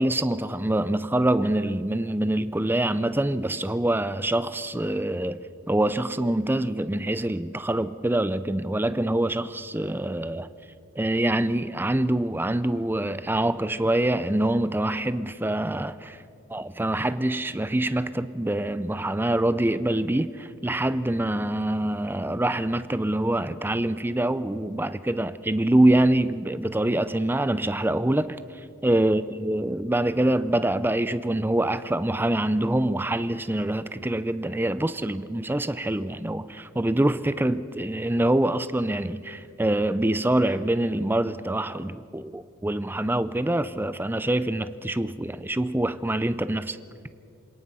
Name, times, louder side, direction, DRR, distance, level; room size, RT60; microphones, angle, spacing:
voice 1, 0.0-10.5 11.0-16.2 16.5-28.4 28.8-46.8, right 1 dB, 10° right, 0.5 m, -25 dB
27.5 x 18.0 x 5.6 m
head